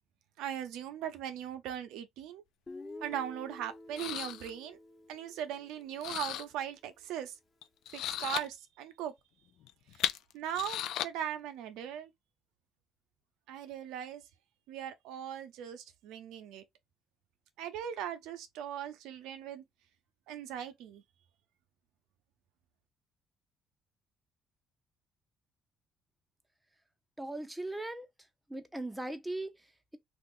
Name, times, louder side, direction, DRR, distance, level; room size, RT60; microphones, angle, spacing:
voice 1, 0.4-2.4 3.0-4.8 5.1-7.3 7.9-9.1 10.3-12.1 13.5-14.2 14.7-16.6 17.6-19.6 20.3-21.0, right 10 dB, 85° right, 0.6 m, -39 dB
Guitar, 2.7-6.6, left 2 dB, 25° left, 1.1 m, -50 dB
sound 1, 3.1-3.2 4.0-4.5 6.0-6.4 7.6-8.5 9.6-11.0, left 11 dB, 75° left, 0.4 m, -35 dB
voice 2, 27.2-28.1 28.5-30.0, right 2 dB, 5° right, 0.7 m, -39 dB
2.8 x 2.5 x 3.7 m
cardioid pair, 100°, 0 cm